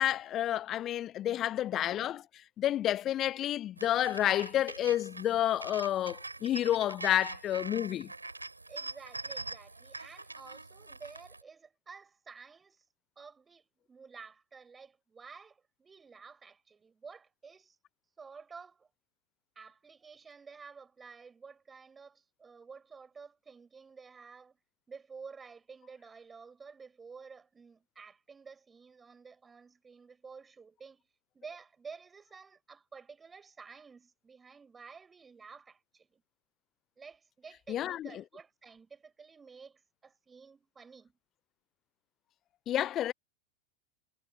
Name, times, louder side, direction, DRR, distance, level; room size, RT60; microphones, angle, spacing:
voice 1, 0.0-2.2 2.6-8.1 37.7-38.1 42.7-43.1, left 12 dB, 30° left, 0.7 m, -30 dB
sound 1, 3.8-11.4, right 3 dB, 80° right, 4.8 m, -44 dB
voice 2, 8.7-12.8 13.2-17.8 18.2-18.9 19.6-24.6 24.9-31.0 31.3-36.2 37.0-41.2, right 5 dB, 15° right, 7.3 m, -51 dB
figure-of-eight pair, 90°, 0 cm